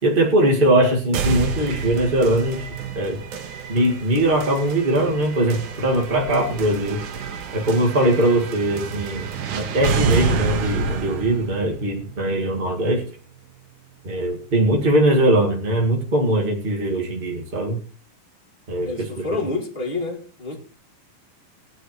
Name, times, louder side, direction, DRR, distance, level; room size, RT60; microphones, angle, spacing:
voice 1, 0.0-2.7 2.9-3.2 3.7-7.0 7.5-9.3 9.5-13.0 14.0-17.8 18.7-19.2, right 1 dB, 30° right, 1.0 m, -20 dB
sound 1, 1.1-13.1, right 5 dB, 65° right, 2.6 m, -29 dB
voice 2, 18.8-20.6, left 3 dB, 20° left, 1.4 m, -28 dB
20.5 x 10.0 x 3.1 m
omnidirectional pair, 4.1 m